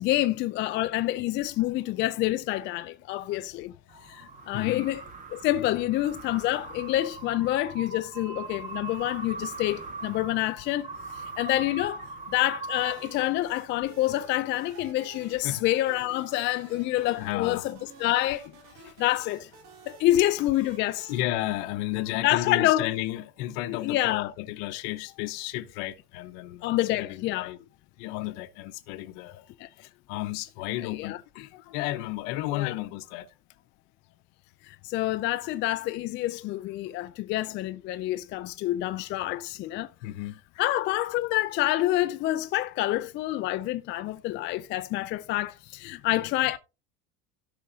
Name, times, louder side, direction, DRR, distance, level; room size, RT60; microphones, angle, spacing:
voice 1, 0.0-3.7 4.0-5.0 5.3-10.9 11.1-17.7 18.0-18.5 19.0-19.5 19.9-21.1 22.2-22.9 23.7-24.3 26.6-27.5 29.6-29.7 30.8-31.2 32.5-32.7 34.7-39.9 40.6-46.6, left 15 dB, 40° left, 0.5 m, -27 dB
sound 1, 3.9-13.6, right 3 dB, 25° right, 1.8 m, -41 dB
voice 2, 4.5-4.9 15.4-15.6 17.1-17.7 18.8-18.9 20.6-20.7 21.1-27.6 28.0-29.4 30.1-33.3 40.0-40.7, left 15 dB, 65° left, 1.1 m, -33 dB
sound 2, 12.7-22.3, right 5 dB, 65° right, 3.1 m, -52 dB
16.5 x 6.1 x 2.8 m
cardioid pair, 160°, 30 cm